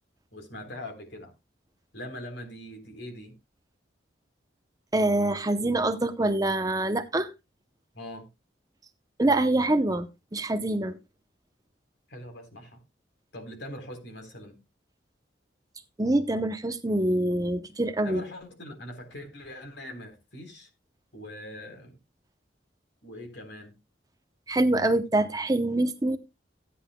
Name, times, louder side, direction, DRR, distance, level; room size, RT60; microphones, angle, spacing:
voice 1, 0.3-1.3 1.9-3.4 7.9-8.3 12.1-12.8 13.3-14.6 18.0-20.7 21.1-22.0 23.0-23.7 24.9-25.0, left 1 dB, 65° left, 3.7 m, -42 dB
voice 2, 4.9-7.3 9.2-11.0 16.0-18.2 24.5-26.2, right 1 dB, 20° right, 0.7 m, -25 dB
16.0 x 10.0 x 2.2 m
head